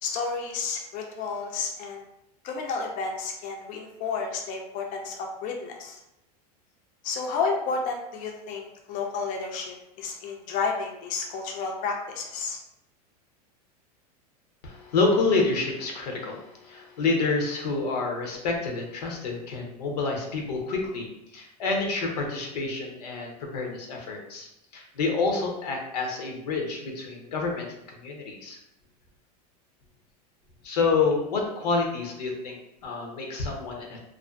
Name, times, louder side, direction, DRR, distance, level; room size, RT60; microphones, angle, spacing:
voice 1, 0.0-2.0 2.4-6.0 7.0-12.6, left 4 dB, 40° left, 1 dB, 0.4 m, -31 dB
voice 2, 14.6-21.1 21.3-28.6 30.6-34.0, left 3 dB, 90° left, 1 dB, 0.7 m, -28 dB
2.5 x 2.3 x 2.3 m, 0.86 s
supercardioid pair, 120°, 20 cm